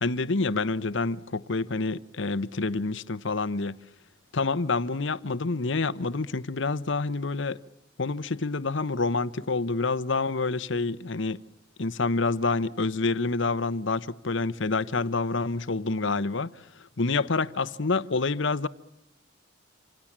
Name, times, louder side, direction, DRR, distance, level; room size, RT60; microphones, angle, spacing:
voice 1, 0.0-3.8 4.3-7.6 8.0-11.4 11.8-18.7, left 3 dB, 65° left, 1.0 m, -27 dB
27.5 x 26.5 x 7.4 m
head